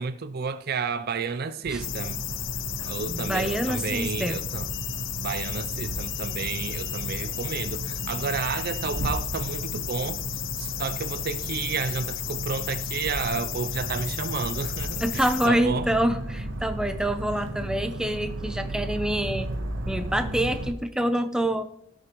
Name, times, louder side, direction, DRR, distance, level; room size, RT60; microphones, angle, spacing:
voice 1, 0.0-2.2 2.8-4.7 5.2-10.2 10.6-15.9, right 5 dB, 50° right, 0.5 m, -31 dB
sound 1, 1.6-20.7, right 1 dB, 70° right, 1.0 m, -35 dB
sound 2, 1.8-15.5, left 19 dB, 65° left, 0.3 m, -34 dB
voice 2, 3.1-4.4 15.0-19.5 19.9-21.6, right 1 dB, 5° right, 0.6 m, -26 dB
18.0 x 6.7 x 3.0 m
head